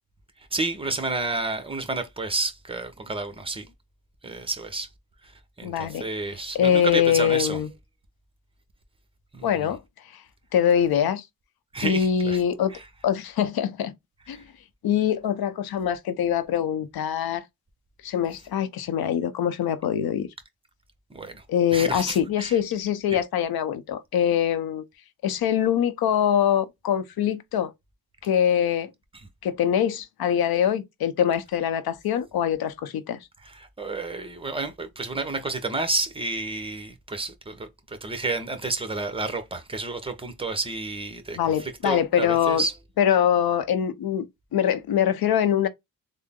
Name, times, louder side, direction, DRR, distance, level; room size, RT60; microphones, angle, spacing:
voice 1, 0.5-3.7 4.2-4.9 5.2-5.3 5.6-7.6 9.3-9.7 11.7-12.4 12.7-12.9 14.3-14.4 21.1-21.4 21.7-22.6 23.1-23.2 29.1-29.3 33.4-42.7, right 3 dB, 15° right, 1.0 m, -31 dB
voice 2, 5.6-6.0 6.5-7.7 9.4-9.8 10.5-11.2 11.8-12.7 13.0-13.9 14.3-14.4 14.8-17.4 18.0-20.3 21.5-24.8 25.2-27.7 28.2-28.9 29.4-33.2 41.4-42.6 43.0-44.3 44.5-45.7, left 9 dB, 85° left, 0.7 m, -23 dB
3.7 x 2.1 x 3.6 m
cardioid pair, 85°, 36 cm